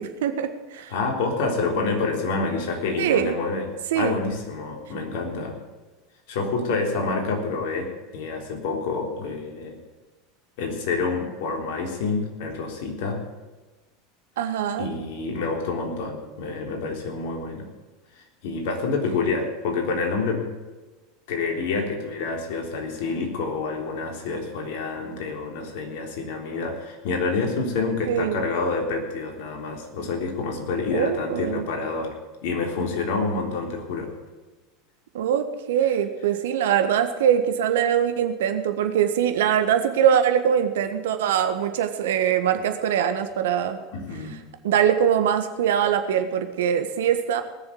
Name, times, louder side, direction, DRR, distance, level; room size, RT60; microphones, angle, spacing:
voice 1, 0.0-0.9 3.0-3.3 3.9-4.2 14.4-14.9 28.1-28.4 30.9-31.6 35.1-43.8 44.6-47.4, right 9 dB, 70° right, 8 dB, 1.4 m, -22 dB
voice 2, 0.9-3.7 3.9-5.6 6.3-9.8 10.6-13.3 14.8-17.7 18.2-20.5 21.3-32.2 32.4-34.1 43.9-44.4, left 4 dB, 65° left, 3 dB, 3.6 m, -28 dB
19.0 x 7.1 x 8.4 m, 1.2 s
hypercardioid pair, 85°, 0 cm